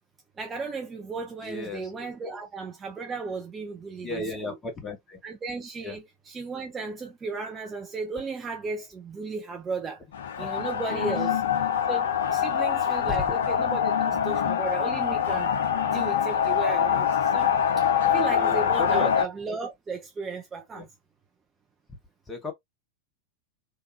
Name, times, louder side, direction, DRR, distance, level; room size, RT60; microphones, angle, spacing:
voice 1, 0.4-4.2 5.2-10.0 10.4-11.4 11.9-15.5 15.8-20.9, right 4 dB, 20° right, 0.5 m, -35 dB
voice 2, 1.4-2.4 4.0-5.2 5.8-6.0 10.4-10.5 10.9-11.2 13.1-13.2 18.3-19.1 20.7-20.9 22.3-22.5, left 3 dB, 20° left, 1.2 m, -35 dB
sound 1, 10.1-19.3, left 8 dB, 65° left, 0.5 m, -24 dB
3.4 x 2.3 x 2.8 m
figure-of-eight pair, 90°, 0 cm